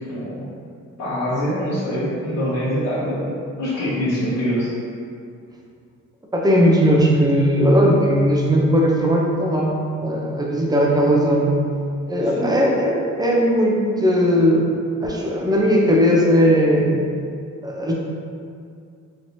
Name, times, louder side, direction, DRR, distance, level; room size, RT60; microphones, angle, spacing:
voice 1, 0.0-0.4 1.0-4.7 12.2-12.5, equal, 75° left, -13 dB, 1.1 m, -24 dB
voice 2, 6.3-11.5 12.1-16.9 17.6-17.9, equal, 15° right, -2 dB, 0.5 m, -18 dB
3.1 x 2.9 x 2.6 m, 2.3 s
cardioid pair, 90°, 30 cm